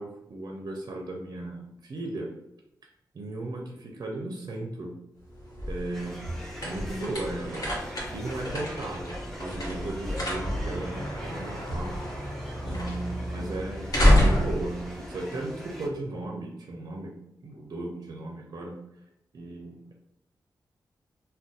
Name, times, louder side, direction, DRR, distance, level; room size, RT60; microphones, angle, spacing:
voice 1, 0.0-2.3 3.1-4.9 5.7-7.6 8.1-12.0 12.6-17.1 17.4-18.8 19.3-19.9, right 2 dB, 55° right, 0 dB, 0.5 m, -36 dB
sound 1, 5.2-15.9, equal, 50° left, 1.0 m, -29 dB
sound 2, 5.9-15.9, equal, 5° left, 0.7 m, -43 dB
2.6 x 2.2 x 3.7 m, 0.80 s
wide cardioid pair, 105°, 8 cm